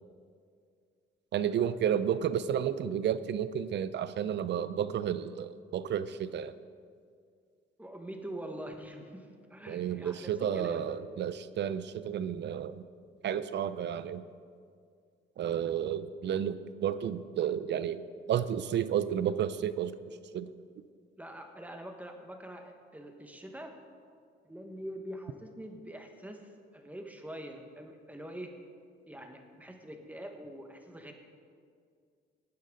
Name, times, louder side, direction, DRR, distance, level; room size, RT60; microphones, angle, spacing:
voice 1, 1.3-6.5 9.7-12.8 13.2-14.2 15.4-18.0 18.3-20.0 20.3-20.5, right 9 dB, 60° right, 14 dB, 0.6 m, -31 dB
voice 2, 7.8-10.9 21.2-23.8 24.4-28.5 29.0-31.1, right 1 dB, 10° right, 4 dB, 1.5 m, -44 dB
18.5 x 9.5 x 4.0 m, 2.2 s
cardioid pair, 90°, 20 cm